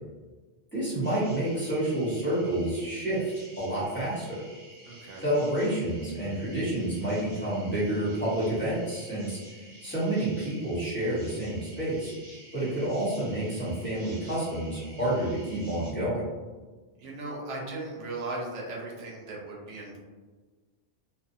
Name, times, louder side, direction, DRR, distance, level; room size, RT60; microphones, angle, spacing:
voice 1, 0.7-4.4 5.2-9.4 9.8-12.1 12.5-16.2, right 1 dB, 10° left, -12 dB, 0.9 m, -29 dB
sound 1, 1.0-15.9, right 1 dB, 45° right, 0.9 m, -51 dB
voice 2, 4.9-5.2 17.0-20.0, right 2 dB, 80° right, -2 dB, 1.0 m, -37 dB
2.6 x 2.3 x 2.6 m, 1.3 s
omnidirectional pair, 1.2 m